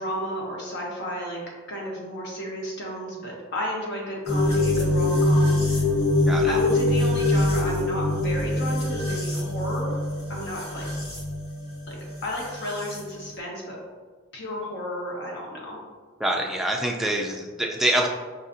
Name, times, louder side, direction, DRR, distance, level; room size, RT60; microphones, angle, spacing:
voice 1, 0.0-1.4 1.7-5.8 6.5-10.0 10.3-10.9 11.9-12.0 12.2-13.8 14.3-15.8, equal, 55° left, -3 dB, 1.0 m, -32 dB
sound 1, 4.3-13.0, left 2 dB, 85° left, 1.4 m, -24 dB
voice 2, 6.3-6.6 16.2-18.1, right 1 dB, ahead, -1 dB, 0.4 m, -25 dB
5.5 x 2.6 x 2.6 m, 1.4 s
head